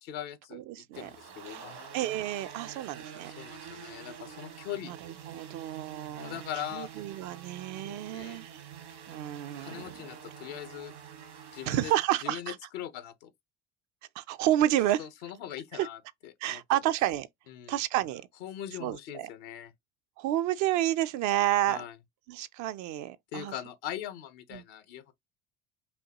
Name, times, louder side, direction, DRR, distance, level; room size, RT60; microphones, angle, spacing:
voice 1, 0.0-1.9 3.4-4.9 6.2-6.9 7.8-8.4 9.6-10.9 11.5-11.9 12.2-13.3 15.0-16.8 17.5-17.8 18.4-19.7 21.7-22.0 23.3-25.1, left 10 dB, 70° left, 0.9 m, -41 dB
voice 2, 0.5-1.1 1.5-1.6 1.9-3.3 3.7-3.9 4.8-6.4 6.7-8.6 9.1-9.9 11.7-12.6 14.2-15.0 15.7-15.9 16.4-17.3 17.7-18.2 18.8-19.3 20.2-21.8 22.3-23.5 24.5-24.6, right 13 dB, 60° right, 0.5 m, -30 dB
sound 1, 0.9-12.1, right 8 dB, 80° right, 1.8 m, -47 dB
5.6 x 2.2 x 2.9 m
hypercardioid pair, 70°, 32 cm